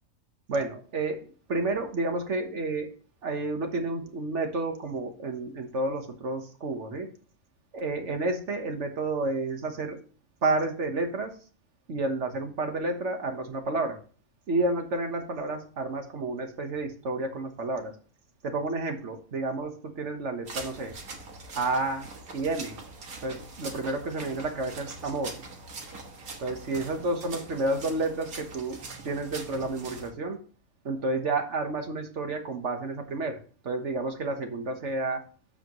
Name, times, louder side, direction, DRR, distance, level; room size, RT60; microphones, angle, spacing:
voice 1, 0.5-1.2 1.5-2.9 3.2-7.1 7.7-10.0 10.4-11.3 11.9-14.0 14.5-17.9 18.4-20.9 21.5-22.8 23.2-25.3 26.4-28.8 29.0-30.4 30.8-33.4 33.6-35.2, right 2 dB, 55° right, 5 dB, 1.5 m, -30 dB
sound 1, 20.5-30.1, right 3 dB, 75° right, 1.8 m, -43 dB
14.0 x 5.0 x 3.0 m, 0.40 s
omnidirectional pair, 1.5 m